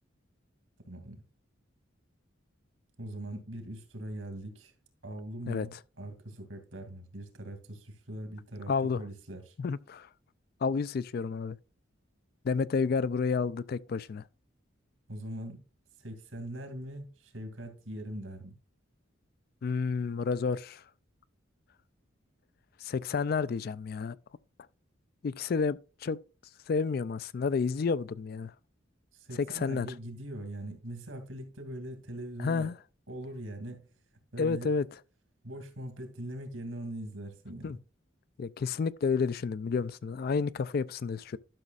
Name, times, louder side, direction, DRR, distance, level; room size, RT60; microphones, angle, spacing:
voice 1, 0.9-1.2 3.0-4.7 5.0-9.6 15.1-15.6 16.0-18.5 29.1-32.7 33.1-33.9 34.3-34.7 35.4-37.8, right 1 dB, 80° right, 2.3 m, -41 dB
voice 2, 5.5-5.8 8.7-9.0 9.6-10.1 10.6-11.6 12.4-14.2 19.6-20.8 22.8-24.2 25.2-26.2 26.7-28.5 29.4-29.9 32.4-32.8 34.4-34.9 37.6-37.8 38.4-41.4, left 5 dB, 50° left, 0.3 m, -30 dB
12.0 x 6.3 x 2.4 m
head